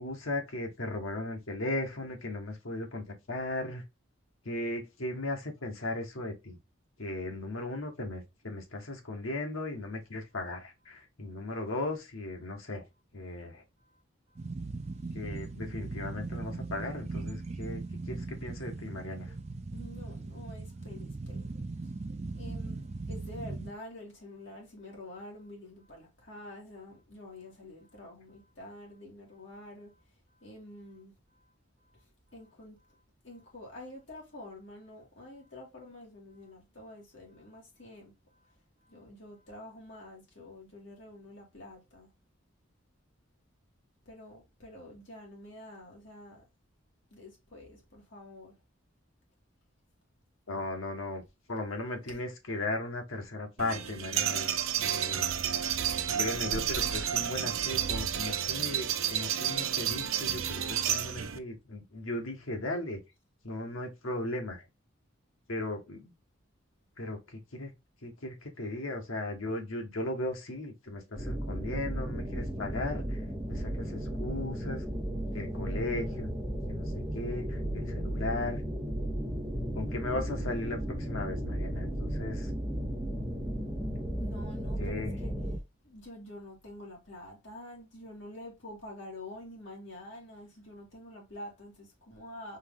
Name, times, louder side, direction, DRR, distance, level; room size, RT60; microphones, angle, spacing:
voice 1, 0.0-3.8 4.4-6.6 7.0-12.8 13.1-13.6 15.1-19.3 50.5-51.2 51.5-54.5 54.8-55.3 56.2-63.0 63.4-64.6 65.5-66.1 67.0-67.7 68.0-73.2 73.5-74.8 75.3-76.3 76.7-78.6 79.7-82.5 84.8-85.2, left 2 dB, 80° left, 1.4 m, -37 dB
sound 1, 14.4-23.7, right 3 dB, 30° right, 0.4 m, -39 dB
voice 2, 19.7-21.5 21.8-22.0 22.3-29.9 30.4-31.4 31.9-32.0 32.3-33.0 33.2-38.1 38.4-38.5 38.8-42.1 44.1-46.5 47.1-48.5 52.1-52.2 84.2-85.6 85.8-92.6, left 1 dB, 60° left, 2.4 m, -48 dB
sound 2, 53.6-61.4, right 9 dB, 80° right, 0.5 m, -31 dB
sound 3, 71.2-85.6, right 1 dB, ahead, 1.6 m, -34 dB
4.5 x 3.1 x 3.6 m
head